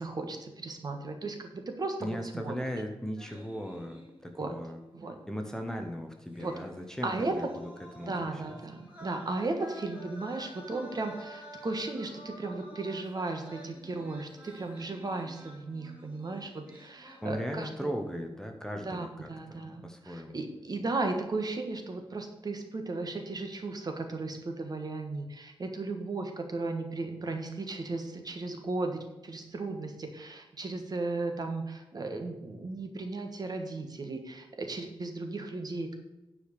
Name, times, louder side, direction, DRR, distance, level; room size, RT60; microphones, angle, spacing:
voice 1, 0.0-2.5 4.4-4.5 4.9-5.1 6.4-6.5 7.0-7.3 8.0-17.9 18.8-36.0, right 3 dB, 45° right, 5 dB, 1.3 m, -35 dB
voice 2, 2.0-4.8 5.3-8.4 17.2-20.4, equal, 5° left, 3 dB, 0.9 m, -38 dB
sound 1, 3.2-4.5 4.8-4.9 6.2-17.7 18.0-18.3, right 1 dB, 10° right, 3.6 m, -50 dB
9.9 x 5.0 x 6.7 m, 1.0 s
wide cardioid pair, 155°, 10 cm